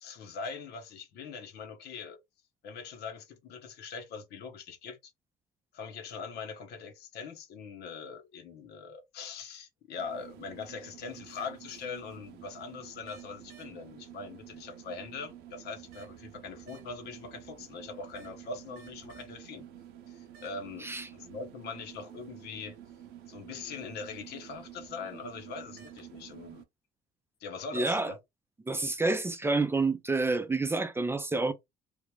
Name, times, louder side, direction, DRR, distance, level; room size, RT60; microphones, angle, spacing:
voice 1, 0.0-2.2 2.6-5.1 5.7-19.7 20.1-22.8 23.3-26.6 27.4-28.2, left 5 dB, 75° left, 1.0 m, -42 dB
sound 1, 10.0-26.6, right 10 dB, 85° right, 0.7 m, -50 dB
voice 2, 27.7-28.1 28.7-31.5, right 3 dB, 15° right, 0.5 m, -28 dB
3.2 x 2.4 x 3.2 m
cardioid pair, 110°, 17 cm